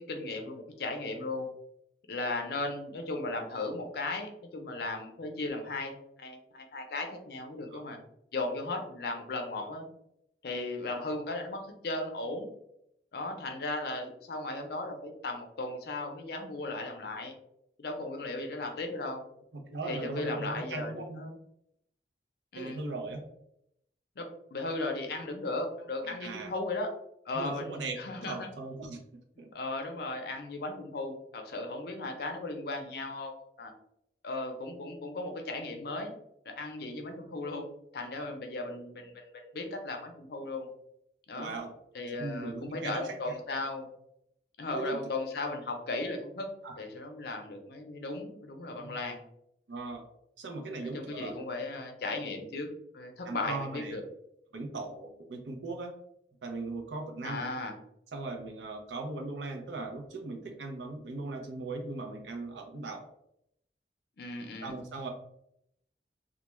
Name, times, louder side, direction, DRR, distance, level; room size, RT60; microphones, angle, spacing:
voice 1, 0.0-1.5 2.1-8.0 8.3-9.9 10.4-12.5 13.1-17.3 17.8-19.2 19.8-21.4 22.5-22.8 24.2-26.9 27.3-28.5 29.5-33.7 34.2-36.1 36.5-37.6 37.9-39.2 39.5-40.7 41.3-41.5 41.9-43.9 44.6-46.5 46.8-49.2 50.8-52.7 52.9-54.0 57.2-57.7 64.2-64.7, left 2 dB, 60° left, 3 dB, 0.5 m, -36 dB
voice 2, 19.5-21.2 22.6-23.2 26.0-26.5 27.3-27.9 28.2-29.5 38.2-38.3 41.3-41.7 42.1-43.3 44.7-45.1 46.6-46.8 48.8-49.0 49.7-50.0 50.4-51.4 53.2-53.9 54.5-55.9 56.4-57.4 58.1-63.0 64.6-65.1, right 3 dB, 85° right, 3 dB, 0.6 m, -38 dB
2.3 x 2.2 x 3.0 m, 0.76 s
head